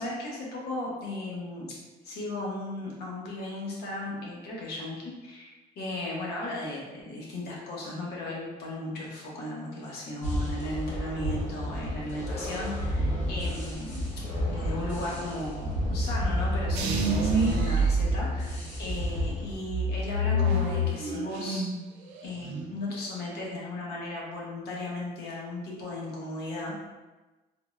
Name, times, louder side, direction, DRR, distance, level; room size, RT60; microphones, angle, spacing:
voice 1, 0.0-1.7 2.0-14.1 14.5-21.6 22.2-26.8, left 2 dB, 70° left, -4 dB, 0.9 m, -36 dB
sound 1, 10.2-19.5, equal, 45° left, 0.8 m, -31 dB
sound 2, 16.7-18.8 19.2-21.8 22.1-22.7, right 1 dB, 85° right, 0.4 m, -27 dB
3.5 x 2.0 x 2.4 m, 1.2 s
cardioid pair, 110°, 17 cm